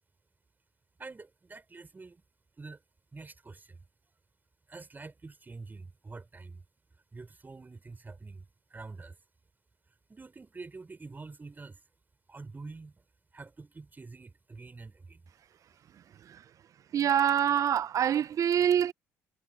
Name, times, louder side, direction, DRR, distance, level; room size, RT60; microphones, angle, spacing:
voice 1, 1.0-2.2 2.6-2.8 3.1-3.8 4.7-6.6 7.1-8.4 8.7-9.2 10.1-11.8 12.3-13.0 13.3-15.2, right 3 dB, 25° right, 4.8 m, -46 dB
voice 2, 16.9-18.9, right 9 dB, 50° right, 0.7 m, -25 dB
hypercardioid pair, 55°, 7 cm